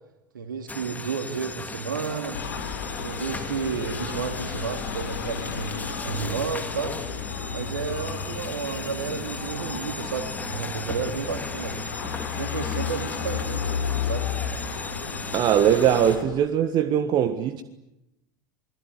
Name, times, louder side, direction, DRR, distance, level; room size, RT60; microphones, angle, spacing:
voice 1, 0.3-2.4 3.0-7.0 7.5-11.8 12.3-14.3, right 6 dB, 75° right, 2.5 m, -32 dB
sound 1, 0.7-16.2, left 3 dB, 15° left, 3.2 m, -37 dB
sound 2, 2.3-16.2, left 6 dB, 70° left, 4.2 m, -33 dB
voice 2, 15.3-17.6, right 9 dB, 40° right, 1.6 m, -21 dB
28.5 x 21.5 x 9.9 m
figure-of-eight pair, 75°, 11 cm